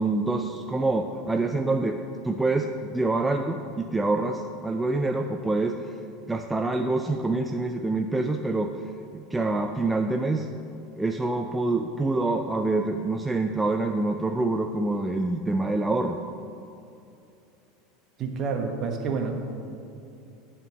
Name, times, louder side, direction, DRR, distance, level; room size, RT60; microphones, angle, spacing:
voice 1, 0.0-2.0 2.2-5.9 6.3-8.7 9.1-10.5 11.0-16.2, right 2 dB, 10° right, 4 dB, 0.4 m, -26 dB
voice 2, 18.2-19.5, right 4 dB, 40° right, 2 dB, 1.3 m, -29 dB
10.5 x 4.4 x 7.2 m, 2.6 s
figure-of-eight pair, 75°, 0 cm